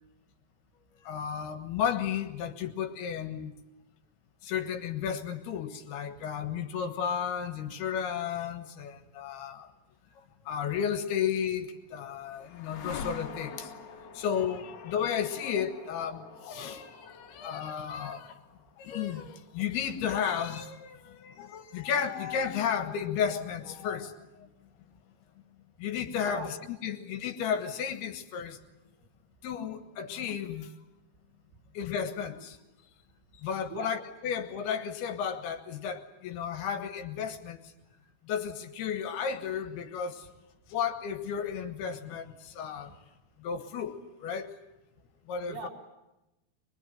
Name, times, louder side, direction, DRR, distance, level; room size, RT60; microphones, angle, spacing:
voice 1, 1.0-3.5 4.4-9.7 10.2-13.7 14.1-18.4 18.8-24.5 25.8-26.5 26.8-28.6 29.4-30.7 31.7-32.6 33.4-37.6 38.2-40.3 40.7-42.9 43.4-44.5 45.3-45.7, left 7 dB, 80° left, 8 dB, 3.4 m, -33 dB
sound 1, 11.4-21.4, left 6 dB, 55° left, 2.2 m, -47 dB
voice 2, 26.3-26.5 31.5-31.6 33.7-34.0 42.9-43.0 45.5-45.7, right 4 dB, 80° right, 0 dB, 5.2 m, -40 dB
23.5 x 21.5 x 9.1 m, 0.96 s
omnidirectional pair, 4.6 m